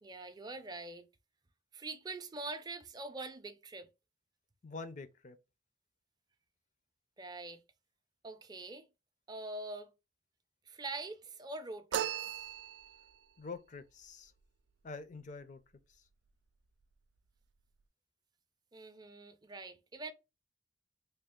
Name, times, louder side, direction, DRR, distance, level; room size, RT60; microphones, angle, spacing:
voice 1, 0.0-1.0 1.7-3.9 7.2-7.6 8.2-8.9 9.3-9.9 10.7-12.3 18.7-20.1, right 2 dB, 25° right, 0.5 m, -44 dB
voice 2, 4.6-5.4 13.4-14.3 14.8-15.6 15.9-16.1, left 4 dB, 45° left, 0.5 m, -46 dB
sound 1, 11.9-13.2, right 10 dB, 90° right, 0.3 m, -37 dB
3.4 x 2.3 x 3.7 m
head